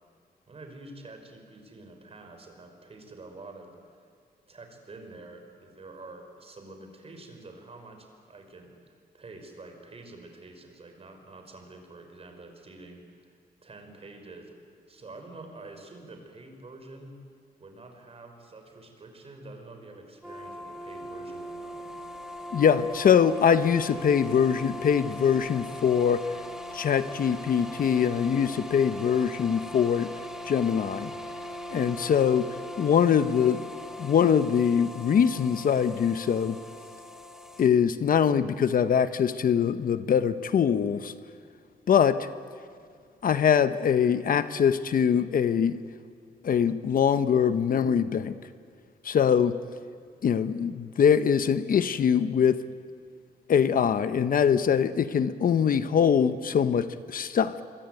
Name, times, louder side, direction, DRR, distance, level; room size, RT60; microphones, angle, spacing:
voice 1, 0.5-4.0 4.5-13.3 13.6-14.5 14.9-17.2 17.6-21.9, right 2 dB, 35° right, 5 dB, 5.4 m, -47 dB
sound 1, 20.2-37.7, left 1 dB, 5° right, 2.5 m, -40 dB
voice 2, 22.5-26.2 26.7-30.1 30.4-31.1 31.7-32.5 32.8-33.6 34.0-36.6 37.6-41.1 41.9-42.3 43.2-45.8 46.4-48.3 49.0-49.5 50.2-52.6 53.5-57.6, left 7 dB, 55° left, 12 dB, 1.0 m, -23 dB
26.5 x 23.5 x 9.2 m, 2.2 s
cardioid pair, 115°, 17 cm